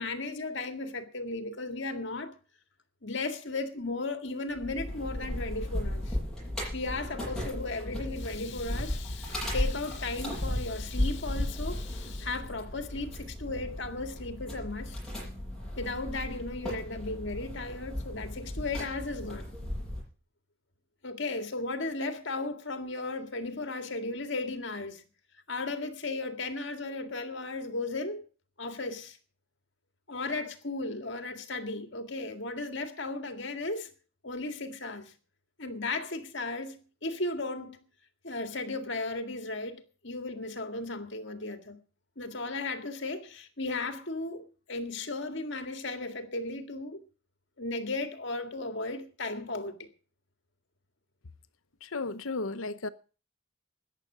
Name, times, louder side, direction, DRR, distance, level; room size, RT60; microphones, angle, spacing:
voice 1, 0.0-2.3 3.0-6.2 6.7-15.0 15.8-19.5 21.0-25.0 25.5-28.2 28.6-29.2 30.1-33.9 34.2-35.1 35.6-37.8 38.2-41.8 42.2-47.0 47.6-49.9, left 2 dB, 60° left, 2.0 m, -35 dB
sound 1, 4.5-20.0, left 1 dB, 5° left, 7.8 m, -35 dB
voice 2, 51.8-52.9, left 3 dB, 85° left, 0.9 m, -34 dB
14.0 x 10.5 x 6.2 m
head